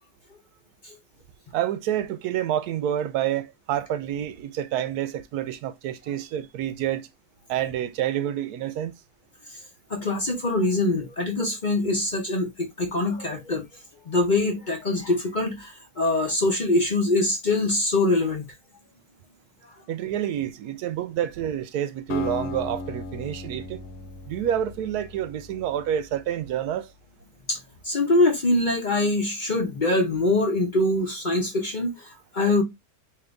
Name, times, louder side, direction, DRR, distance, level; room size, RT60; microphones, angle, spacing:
voice 1, 1.5-7.1 7.5-8.9 19.9-23.8 24.3-26.9, right 10 dB, 80° right, 1.1 m, -28 dB
voice 2, 9.9-13.6 14.1-18.4 27.5-27.6 27.8-32.6, left 2 dB, 40° left, 0.8 m, -23 dB
Acoustic guitar, 22.1-26.2, left 3 dB, 90° left, 1.2 m, -36 dB
3.8 x 2.9 x 3.4 m
omnidirectional pair, 1.6 m